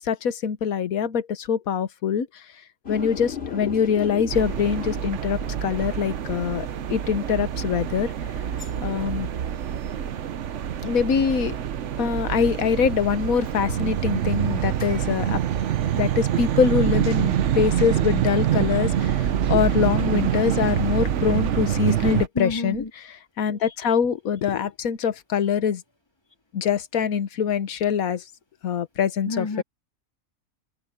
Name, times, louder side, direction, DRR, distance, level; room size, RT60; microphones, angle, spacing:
voice 1, 0.0-2.3 2.9-8.1 8.8-9.3 10.8-11.5 12.0-15.4 16.0-25.8 26.5-28.2 28.6-29.6, left 7 dB, 85° left, 1.5 m, -24 dB
sound 1, 2.8-14.1 14.8-18.4, left 5 dB, 45° left, 3.6 m, -41 dB
sound 2, 4.3-22.3, right 10 dB, 65° right, 1.1 m, -25 dB
voice 2, 22.4-22.9 23.6-23.7 29.3-29.6, left 3 dB, 20° left, 2.5 m, -29 dB
open air
omnidirectional pair, 1.4 m